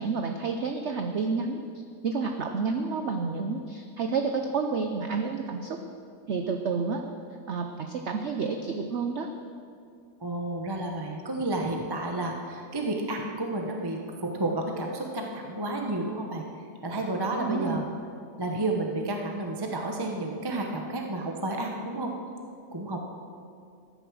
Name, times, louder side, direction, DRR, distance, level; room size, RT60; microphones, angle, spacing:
voice 1, 0.0-1.6 2.0-5.8 6.3-7.0 7.5-9.3 17.5-17.8, right 4 dB, 55° right, 5 dB, 0.8 m, -29 dB
voice 2, 10.2-16.4 16.8-17.9 18.4-22.1 22.7-23.0, right 2 dB, 20° right, 1 dB, 0.8 m, -31 dB
14.0 x 9.6 x 6.3 m, 2.4 s
omnidirectional pair, 1.8 m